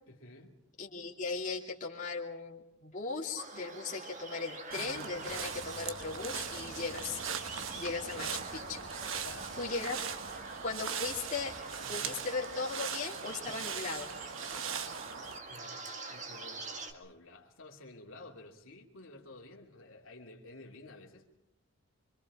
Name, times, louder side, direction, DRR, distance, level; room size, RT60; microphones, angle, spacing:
voice 1, 0.1-0.6 8.0-8.4 9.1-9.9 11.8-12.2 15.4-15.8 16.1-21.3, left 2 dB, 65° left, -1 dB, 2.7 m, -52 dB
voice 2, 0.8-8.8 9.6-10.0 10.6-11.5 11.9-14.1, left 4 dB, 35° left, -3 dB, 2.6 m, -38 dB
sound 1, 3.4-16.9, right 3 dB, 35° right, 1.8 m, -46 dB
sound 2, 4.7-15.4, right 7 dB, 65° right, 1.1 m, -40 dB
sound 3, 5.3-12.1, left 1 dB, 15° left, 1.8 m, -56 dB
26.0 x 25.5 x 4.9 m, 0.83 s
head